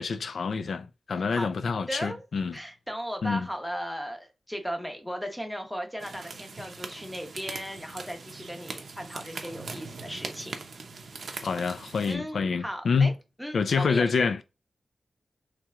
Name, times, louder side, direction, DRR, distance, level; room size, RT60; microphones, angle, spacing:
voice 1, 0.0-2.6 3.2-3.5 11.4-13.1 13.5-14.4, left 5 dB, 70° left, 0.3 m, -27 dB
voice 2, 1.9-2.2 2.5-10.5 12.0-13.1 13.4-14.1, equal, 5° left, 0.7 m, -36 dB
sound 1, 6.0-12.1, right 4 dB, 60° right, 0.6 m, -41 dB
3.2 x 2.9 x 3.5 m
wide cardioid pair, 170°, 0 cm